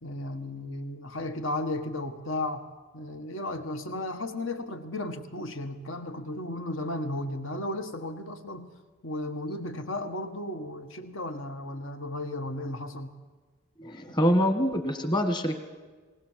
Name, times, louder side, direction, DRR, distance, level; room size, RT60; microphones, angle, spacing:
voice 1, 0.0-2.6 2.9-8.7 9.0-13.1, left 1 dB, 80° left, 8 dB, 1.6 m, -34 dB
voice 2, 13.8-15.6, equal, 20° left, 6 dB, 1.5 m, -25 dB
19.5 x 19.5 x 7.4 m, 1.4 s
head